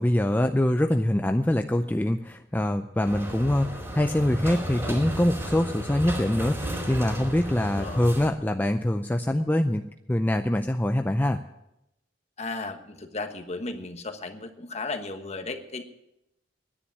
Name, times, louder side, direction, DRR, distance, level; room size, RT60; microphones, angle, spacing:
voice 1, 0.0-11.4, left 1 dB, 10° left, 6 dB, 0.5 m, -24 dB
sound 1, 3.0-8.3, equal, 15° right, 2.9 m, -33 dB
voice 2, 7.7-8.1 12.4-15.8, left 3 dB, 35° left, 6 dB, 1.3 m, -35 dB
10.0 x 10.0 x 9.7 m, 0.87 s
head